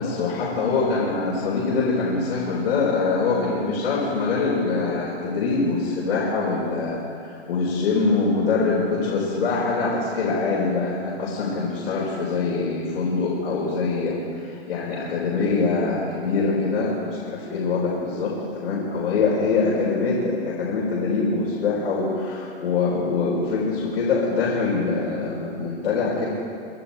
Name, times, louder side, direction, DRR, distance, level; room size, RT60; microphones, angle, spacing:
voice 1, 0.0-26.3, left 4 dB, 70° left, -6 dB, 5.2 m, -24 dB
26.0 x 11.5 x 4.6 m, 2.3 s
hypercardioid pair, 145°, 33 cm